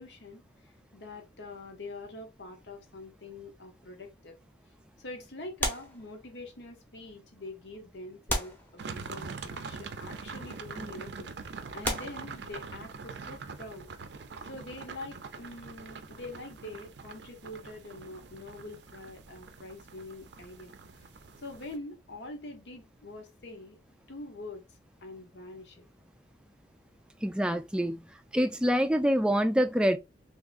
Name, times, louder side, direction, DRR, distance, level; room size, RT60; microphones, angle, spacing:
voice 1, 0.0-4.4 5.0-13.9 14.4-21.1 21.4-23.8 24.1-25.9, left 2 dB, 85° left, 0.9 m, -45 dB
sound 1, 5.6-6.6 7.4-7.5 8.3-9.3 10.3-10.5 11.2-11.3 11.8-13.0 14.9-16.7 17.0-17.2, left 1 dB, 10° left, 0.8 m, -36 dB
sound 2, 8.8-21.8, right 5 dB, 80° right, 0.5 m, -44 dB
voice 2, 27.2-28.1 28.3-30.0, equal, 5° right, 0.3 m, -26 dB
3.6 x 2.8 x 2.4 m
head